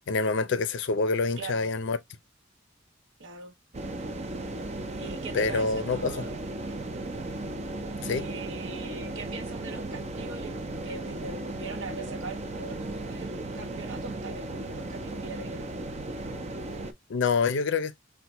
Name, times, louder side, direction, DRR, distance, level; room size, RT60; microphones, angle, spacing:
voice 1, 0.1-2.0 5.3-6.2 8.0-8.3 17.1-17.9, left 4 dB, 70° left, 0.5 m, -26 dB
voice 2, 1.4-1.7 3.2-3.5 5.0-6.8 8.1-10.6 10.8-15.7, right 4 dB, 70° right, 0.7 m, -42 dB
sound 1, 3.7-16.9, right 2 dB, 35° right, 0.5 m, -36 dB
4.3 x 2.2 x 2.9 m
head